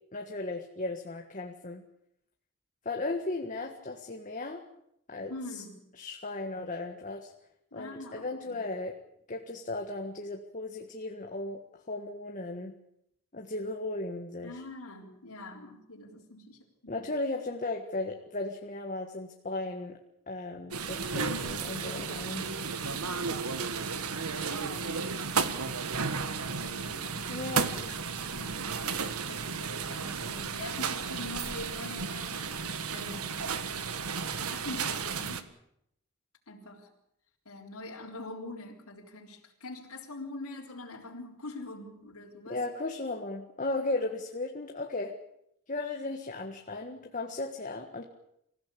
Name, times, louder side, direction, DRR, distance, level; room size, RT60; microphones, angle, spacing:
voice 1, 0.1-1.8 2.8-4.6 5.1-5.6 6.0-7.3 7.7-9.0 9.3-11.6 11.9-12.7 13.3-14.5 16.9-20.0 20.3-22.8 27.3-27.8 42.5-45.2 45.7-48.0, left 2 dB, 35° left, 3 dB, 1.6 m, -36 dB
voice 2, 5.3-5.9 7.7-8.7 14.4-17.0 22.4-22.6 22.9-23.4 23.9-25.7 26.2-26.5 26.7-27.4 27.7-33.5 34.5-35.5 36.5-36.9 37.5-42.6, left 2 dB, 80° left, -2 dB, 3.9 m, -44 dB
sound 1, 20.7-35.4, right 5 dB, 80° right, 1.5 m, -33 dB
25.5 x 15.5 x 8.5 m, 0.77 s
head